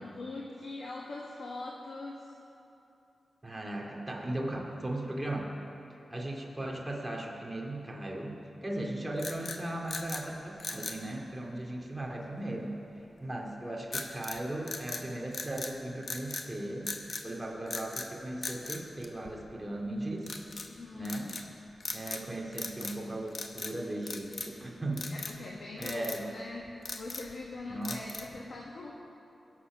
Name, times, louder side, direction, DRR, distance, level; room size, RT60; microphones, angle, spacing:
voice 1, 0.0-2.3 20.7-21.4 25.1-28.9, left 2 dB, 70° left, -2 dB, 1.4 m, -42 dB
voice 2, 3.4-5.5 6.1-12.7 13.2-16.9 17.2-20.4 20.9-21.3 21.9-25.1 25.8-26.2 27.7-28.0, right 1 dB, 15° right, -2 dB, 2.3 m, -37 dB
sound 1, 9.2-10.3 10.6-11.0 13.9-14.4 14.7-15.8 16.0-16.5 16.9-17.3 17.7-18.1 18.4-19.6 20.2-20.7 21.1-21.5 21.8-22.3 22.5-23.0 23.3-23.8 24.1-24.6 25.0-25.4 25.8-26.2 26.7-27.4 27.8-28.4, left 3 dB, 55° left, 1.1 m, -39 dB
22.0 x 7.4 x 6.0 m, 2.9 s
wide cardioid pair, 100°, 0 cm